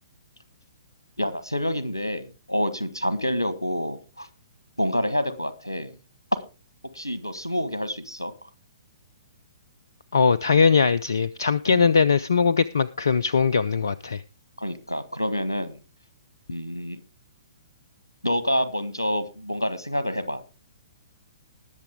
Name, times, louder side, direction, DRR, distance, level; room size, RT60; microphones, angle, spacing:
voice 1, 1.2-4.3 4.8-6.0 6.9-8.3 11.7-11.9 14.6-15.8 16.5-17.0 18.2-20.4, equal, 90° left, 13 dB, 1.4 m, -28 dB
voice 2, 10.1-14.2, left 5 dB, 65° left, 18 dB, 0.4 m, -20 dB
20.0 x 6.9 x 3.5 m, 0.32 s
figure-of-eight pair, 120°, 2 cm